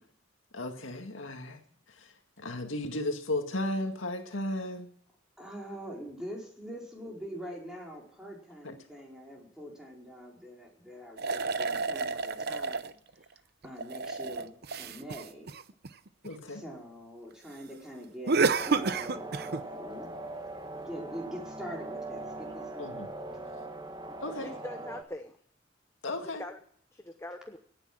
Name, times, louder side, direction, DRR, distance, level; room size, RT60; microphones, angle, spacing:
voice 1, 0.5-1.6 1.9-4.9 8.6-8.7 16.2-16.6 22.8-23.1 24.2-24.5 26.0-26.4, left 1 dB, 75° left, 5 dB, 2.0 m, -35 dB
voice 2, 5.4-13.0 13.6-15.5 16.5-18.4 18.7-20.1 20.8-23.6 24.0-24.2, equal, 5° right, -2 dB, 4.9 m, -44 dB
sound 1, 11.2-12.9 13.6-16.3 18.3-19.6, right 4 dB, 50° right, 0.7 m, -30 dB
sound 2, 18.5-25.0, right 2 dB, 20° right, 1.6 m, -41 dB
voice 3, 24.3-25.4 26.2-26.6 26.9-27.6, left 1 dB, 15° left, 7 dB, 0.8 m, -42 dB
17.5 x 9.9 x 7.7 m, 0.63 s
head